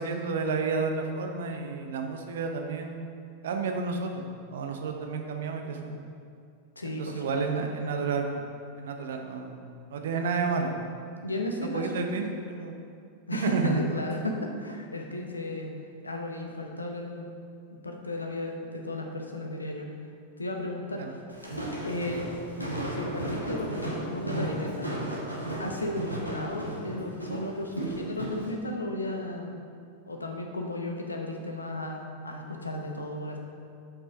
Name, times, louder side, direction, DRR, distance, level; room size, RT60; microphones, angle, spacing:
voice 1, 0.0-3.0 3.4-6.0 7.0-8.2 8.8-10.7 11.6-12.8 13.4-13.8 21.0-21.1, right 4 dB, 60° right, 4 dB, 0.8 m, -31 dB
voice 2, 6.8-7.5 11.2-12.1 13.3-15.7 16.0-17.2 17.8-19.9 20.4-21.2 21.8-22.3 22.9-25.0 25.6-29.5 30.1-33.4, left 1 dB, 80° left, 2 dB, 0.9 m, -34 dB
Walk footsteps, 21.3-28.5, right 1 dB, 90° right, 1.1 m, -34 dB
7.1 x 5.5 x 5.2 m, 2.4 s
figure-of-eight pair, 90°, 0 cm